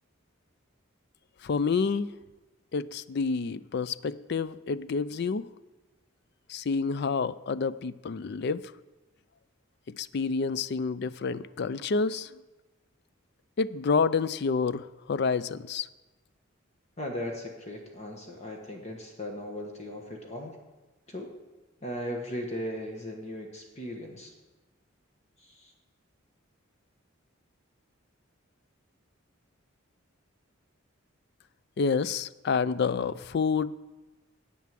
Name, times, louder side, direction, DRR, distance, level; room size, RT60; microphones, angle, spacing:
voice 1, 1.4-2.1 2.7-5.5 6.5-8.6 10.0-12.3 13.6-15.9 31.8-33.7, left 5 dB, 50° left, 17 dB, 0.4 m, -28 dB
voice 2, 17.0-20.6 21.1-21.3 21.8-24.3 25.4-25.7, equal, 30° left, 2 dB, 1.2 m, -37 dB
9.3 x 8.6 x 7.5 m, 1.1 s
head